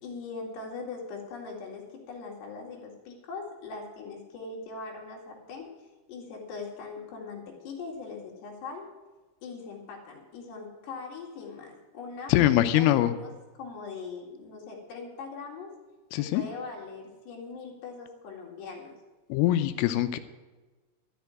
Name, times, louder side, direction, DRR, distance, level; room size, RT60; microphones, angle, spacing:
voice 1, 0.0-5.7 6.1-8.9 9.4-15.7 16.2-19.0, left 4 dB, 65° left, -1 dB, 4.1 m, -41 dB
voice 2, 12.3-13.1 16.1-16.4 19.3-20.2, left 13 dB, 85° left, 10 dB, 3.2 m, -23 dB
13.0 x 6.8 x 9.5 m, 1.3 s
omnidirectional pair, 5.7 m